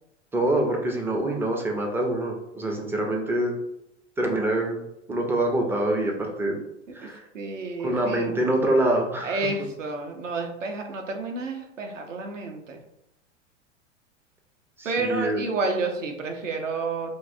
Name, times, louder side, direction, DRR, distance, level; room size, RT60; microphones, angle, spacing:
voice 1, 0.3-3.6 4.2-4.8 5.1-6.6 6.9-7.2 7.8-9.4 14.8-15.4, right 1 dB, 5° right, 1 dB, 0.3 m, -25 dB
voice 2, 7.0-8.4 9.2-12.8 14.8-17.1, right 3 dB, 80° right, 3 dB, 0.8 m, -30 dB
3.7 x 2.7 x 2.5 m, 0.82 s
hypercardioid pair, 95°, 37 cm